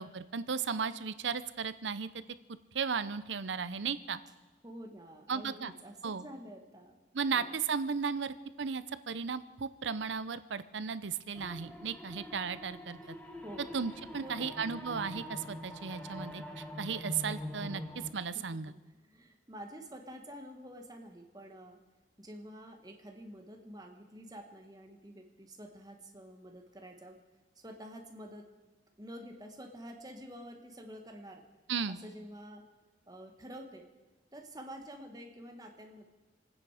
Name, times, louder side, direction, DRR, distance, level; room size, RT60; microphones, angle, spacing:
voice 1, 0.0-2.1 2.7-4.2 5.3-5.7 6.0-6.2 7.1-13.0 13.7-17.8 18.1-18.7 31.7-32.0, right 5 dB, 85° right, 14 dB, 0.7 m, -35 dB
voice 2, 4.6-7.0 7.3-7.6 13.0-13.1 13.4-13.8 14.1-14.5 18.7-21.8 22.2-27.2 27.5-28.5 29.0-31.4 31.9-32.6 33.1-33.9 34.3-36.1, equal, 20° right, 3 dB, 1.5 m, -48 dB
sound 1, 11.3-18.1, left 1 dB, 5° left, 1.1 m, -44 dB
27.0 x 9.7 x 4.9 m, 1.2 s
head